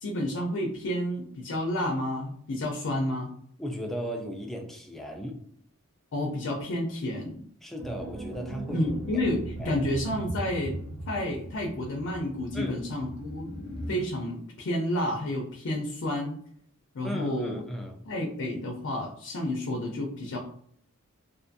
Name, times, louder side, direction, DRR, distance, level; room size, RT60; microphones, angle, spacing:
voice 1, 0.0-3.3 6.1-7.4 8.7-10.8 11.1-13.5 13.9-16.4 16.9-17.6 18.1-20.4, left 1 dB, 60° left, 1 dB, 0.5 m, -30 dB
voice 2, 3.6-5.4 7.6-8.9 9.6-9.8 12.5-12.8 17.0-18.0, equal, ahead, 1 dB, 0.4 m, -36 dB
sound 1, 7.8-12.1, right 2 dB, 65° right, 0.6 m, -38 dB
sound 2, 8.9-14.1, left 1 dB, 20° right, 1.1 m, -43 dB
2.5 x 2.4 x 2.6 m, 0.63 s
head